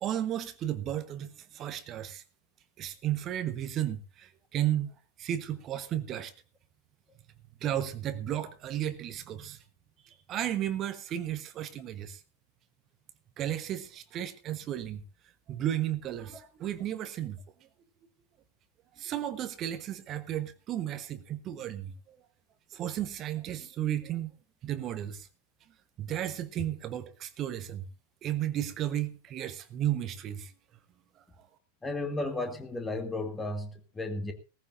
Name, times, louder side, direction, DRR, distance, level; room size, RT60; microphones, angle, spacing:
voice 1, 0.0-2.2 2.8-4.9 5.2-6.3 7.6-9.6 10.0-12.2 13.4-15.0 15.5-17.4 19.0-22.2 22.7-24.3 24.6-25.3 26.0-27.8 28.2-30.5, right 11 dB, 30° right, 1.1 m, -33 dB
voice 2, 31.8-34.3, left 2 dB, 10° left, 1.9 m, -34 dB
18.0 x 14.5 x 2.6 m
figure-of-eight pair, 90°, 0 cm